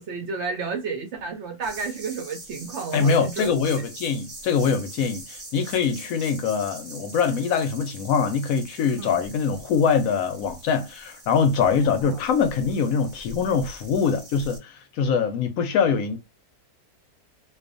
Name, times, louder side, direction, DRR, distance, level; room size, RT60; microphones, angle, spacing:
voice 1, 0.0-3.5 9.0-9.2 11.7-12.2, right 5 dB, 65° right, 0.7 m, -32 dB
sound 1, 1.6-14.6, right 1 dB, 25° right, 0.8 m, -43 dB
voice 2, 2.9-16.2, left 6 dB, 70° left, 0.9 m, -23 dB
2.5 x 2.3 x 2.4 m
omnidirectional pair, 1.6 m